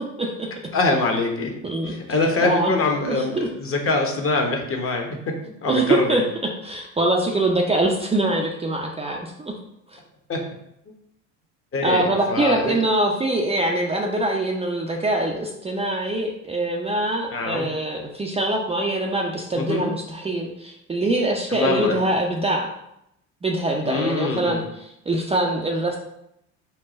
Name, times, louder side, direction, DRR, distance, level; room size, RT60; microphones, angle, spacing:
voice 1, 0.2-0.5 1.6-1.9 2.4-2.7 3.1-3.5 5.7-6.2 6.6-9.5 9.9-10.0 11.8-22.7 23.4-26.0, right 1 dB, 15° right, -1 dB, 0.6 m, -23 dB
voice 2, 0.7-1.5 1.9-5.3 5.6-6.2 10.3-10.4 11.7-12.8 17.3-17.7 19.5-19.9 21.5-22.0 23.8-24.6, left 3 dB, 35° left, 2 dB, 1.1 m, -24 dB
4.5 x 2.3 x 4.1 m, 0.79 s
hypercardioid pair, 70°, 38 cm